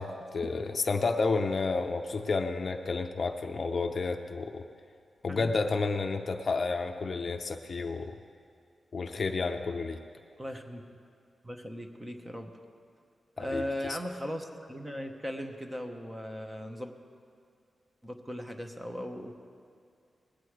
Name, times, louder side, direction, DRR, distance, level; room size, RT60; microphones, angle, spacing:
voice 1, 0.0-4.6 5.2-8.2 8.9-10.0 13.4-13.6 13.9-14.0, left 4 dB, 40° left, 5 dB, 0.6 m, -31 dB
voice 2, 10.4-10.8 11.4-12.5 13.4-16.9 18.0-19.3, equal, 10° right, 4 dB, 0.9 m, -38 dB
20.0 x 8.3 x 4.7 m, 2.4 s
wide cardioid pair, 170°, 0 cm